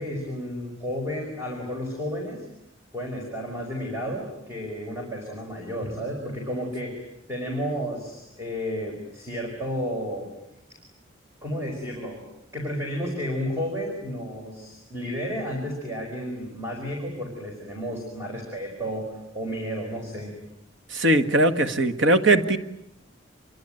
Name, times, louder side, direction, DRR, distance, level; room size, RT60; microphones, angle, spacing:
voice 1, 0.0-2.5 2.9-10.3 11.4-12.2 12.5-20.4, equal, 15° right, 0 dB, 5.1 m, -32 dB
voice 2, 20.9-22.6, right 1 dB, 65° right, 9 dB, 1.8 m, -20 dB
27.5 x 23.5 x 9.2 m, 0.82 s
head